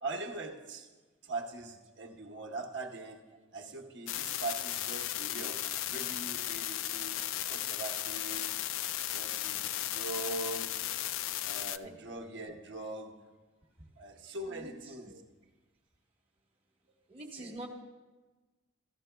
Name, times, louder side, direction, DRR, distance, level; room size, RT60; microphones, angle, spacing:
voice 1, 0.0-0.9 1.2-3.2 3.5-7.2 7.5-8.6 9.1-10.9 11.4-13.3 14.0-15.2 17.4-17.5, right 2 dB, 60° right, 3 dB, 1.0 m, -42 dB
sound 1, 4.1-11.8, left 13 dB, 80° left, 0.3 m, -35 dB
voice 2, 14.4-14.9 17.1-17.7, right 2 dB, 25° right, 0 dB, 1.1 m, -45 dB
14.5 x 13.0 x 2.2 m, 1.2 s
head